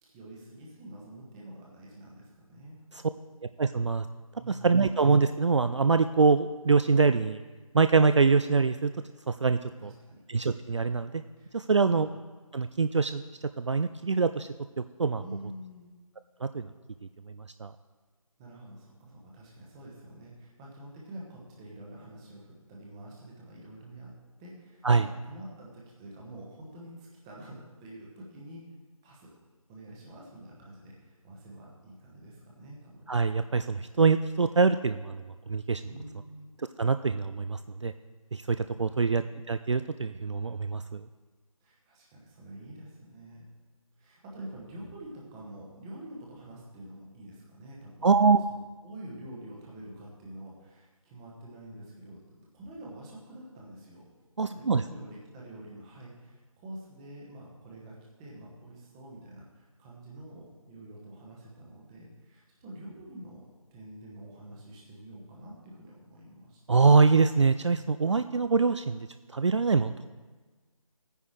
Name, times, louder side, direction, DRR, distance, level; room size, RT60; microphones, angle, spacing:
voice 1, 0.0-2.9 4.4-4.8 9.8-10.2 11.4-12.2 15.2-15.9 18.4-24.1 24.4-28.7 29.0-29.3 29.7-33.1 35.8-36.5 38.4-39.3 41.6-43.5 44.0-48.1 48.5-54.1 54.4-63.4 63.7-66.6, right 1 dB, 10° right, -3 dB, 1.0 m, -47 dB
voice 2, 3.6-4.1 4.5-7.4 7.7-8.9 9.3-9.9 10.3-11.2 11.5-12.1 12.5-14.5 15.0-15.2 16.4-16.7 17.6-17.7 24.8-25.0 33.1-35.8 36.8-37.9 38.3-41.0 48.0-48.4 54.4-54.8 66.7-69.1 69.3-69.9, right 4 dB, 55° right, 10 dB, 0.4 m, -24 dB
15.5 x 10.0 x 3.2 m, 1.3 s
figure-of-eight pair, 160°, 18 cm